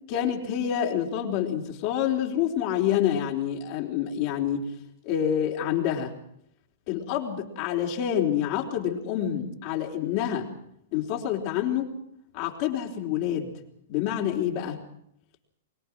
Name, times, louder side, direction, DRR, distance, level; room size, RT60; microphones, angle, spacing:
voice 1, 0.1-4.7 5.0-6.1 6.9-10.5 10.9-12.0 12.3-13.5 13.9-14.8, left 10 dB, 45° left, 0 dB, 4.2 m, -27 dB
24.5 x 21.0 x 6.3 m, 0.74 s
hypercardioid pair, 105°, 0 cm